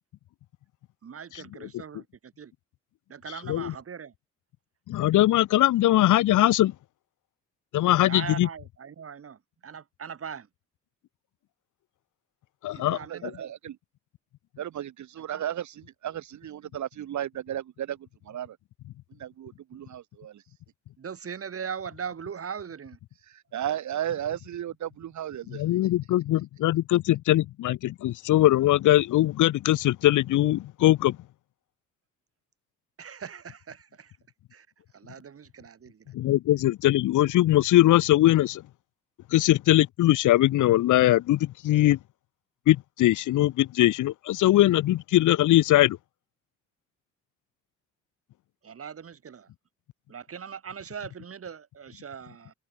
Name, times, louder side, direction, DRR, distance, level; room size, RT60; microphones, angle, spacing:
voice 1, 1.0-2.5 3.1-4.1 8.1-10.5 12.7-13.5 15.3-15.4 21.0-23.0 33.0-34.1 34.5-34.7 34.9-36.1 48.6-49.5 50.1-52.5, right 7 dB, 50° right, 8.0 m, -40 dB
voice 2, 3.4-3.7 4.9-6.7 7.7-8.5 12.6-13.3 25.5-31.2 36.1-38.6 39.3-42.0 42.7-46.0, left 15 dB, 80° left, 1.3 m, -21 dB
voice 3, 12.9-13.8 14.6-18.6 19.2-20.4 23.2-25.7, right 11 dB, 70° right, 6.6 m, -35 dB
cardioid pair, 90°, 30 cm